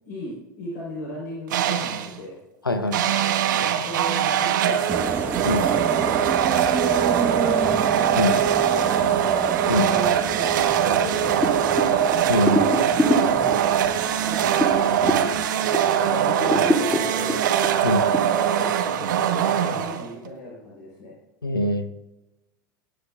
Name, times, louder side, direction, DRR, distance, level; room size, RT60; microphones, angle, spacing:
voice 1, 0.0-2.4 3.4-5.1 5.7-7.8 8.2-9.4 9.8-10.2 10.4-12.0 15.3-17.4 18.0-21.1, left 1 dB, 60° left, -4 dB, 4.0 m, -37 dB
sound 1, 1.5-2.2 2.9-20.3, right 9 dB, 60° right, 1.1 m, -22 dB
voice 2, 2.6-3.0 5.4-5.7 8.1-8.4 9.7-9.9 12.3-12.7 17.8-18.0 21.4-21.9, left 2 dB, 85° left, 11 dB, 0.9 m, -23 dB
sound 2, 4.9-15.4, right 4 dB, 15° right, 1.2 m, -31 dB
sound 3, 11.4-16.0 16.4-18.2, left 1 dB, 10° left, 2.2 m, -26 dB
21.0 x 10.0 x 2.4 m, 0.99 s
figure-of-eight pair, 80°, 11 cm